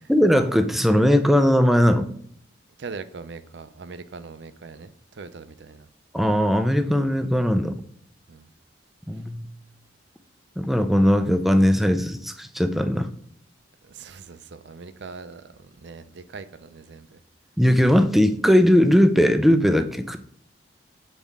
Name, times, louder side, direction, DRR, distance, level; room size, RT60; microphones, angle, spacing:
voice 1, 0.1-2.1 6.1-7.7 9.1-9.5 10.6-13.1 17.6-20.2, equal, ahead, 9 dB, 0.4 m, -19 dB
voice 2, 2.8-5.9 8.3-8.5 13.8-17.2, right 4 dB, 65° right, 12 dB, 0.5 m, -41 dB
7.3 x 4.2 x 3.5 m, 0.66 s
head